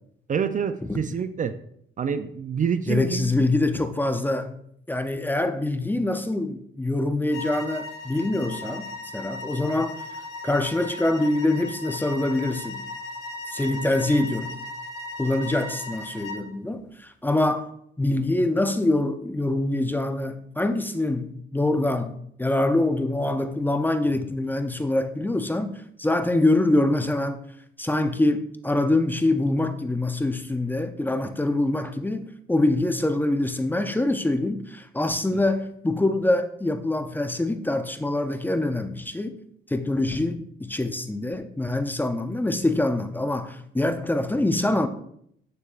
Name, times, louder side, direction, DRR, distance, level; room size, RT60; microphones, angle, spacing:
voice 1, 0.3-1.6 2.0-3.3 35.3-35.4, right 7 dB, 40° right, 0.5 m, -27 dB
voice 2, 2.9-4.5 4.9-10.0 10.4-12.9 13.5-14.5 15.2-17.7 18.0-27.4 27.8-39.4 39.7-44.9, left 2 dB, 10° left, 0.6 m, -25 dB
sound 1, 7.3-16.5, left 2 dB, 60° left, 2.0 m, -37 dB
9.0 x 6.7 x 2.5 m
cardioid pair, 90°, 20 cm